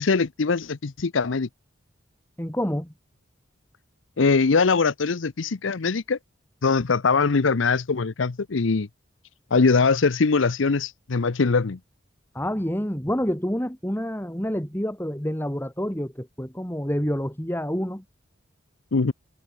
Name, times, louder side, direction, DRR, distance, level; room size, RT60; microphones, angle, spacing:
voice 1, 0.0-1.5 4.2-6.2 6.6-8.9 9.5-11.8 18.9-19.1, left 4 dB, 80° left, 0.7 m, -22 dB
voice 2, 2.4-2.9 12.3-18.0, equal, 10° left, 4.1 m, -28 dB
head